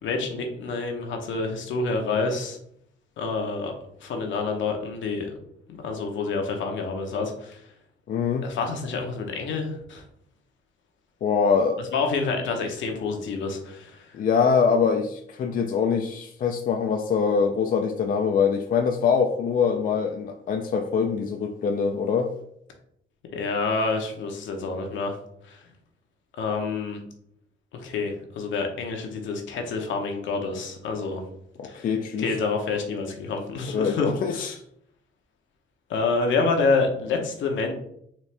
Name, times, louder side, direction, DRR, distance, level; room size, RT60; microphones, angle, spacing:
voice 1, 0.0-2.6 3.2-3.7 4.0-5.3 5.8-7.6 8.4-10.0 11.8-14.1 23.3-25.2 25.4-25.6 26.4-27.0 27.7-31.2 31.6-31.9 32.2-34.1 35.9-37.7, left 4 dB, 75° left, 3 dB, 0.8 m, -28 dB
voice 2, 8.1-8.5 11.2-11.8 14.1-22.3 31.6-32.4 33.7-34.6, left 6 dB, 45° left, 5 dB, 0.4 m, -24 dB
4.3 x 2.4 x 3.3 m, 0.71 s
cardioid pair, 90°, 20 cm